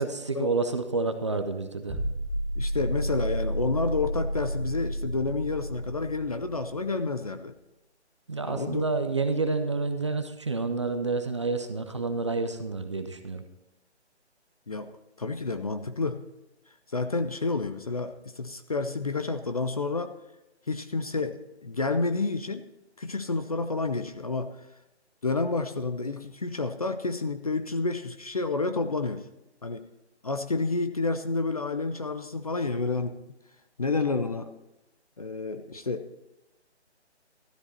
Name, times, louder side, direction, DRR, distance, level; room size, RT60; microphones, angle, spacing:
voice 1, 0.0-2.0 8.3-13.4, right 3 dB, 25° right, 8 dB, 0.6 m, -29 dB
sound 1, 1.9-6.9, equal, ahead, 1.0 m, -31 dB
voice 2, 2.6-7.5 8.5-8.8 14.7-14.9 15.2-16.2 16.9-20.1 20.7-22.7 23.0-24.5 25.2-29.3 29.6-29.8 30.2-33.2 33.8-34.5 35.2-36.1, left 3 dB, 35° left, 8 dB, 0.5 m, -29 dB
13.0 x 12.0 x 4.2 m, 0.93 s
figure-of-eight pair, 155°, 35 cm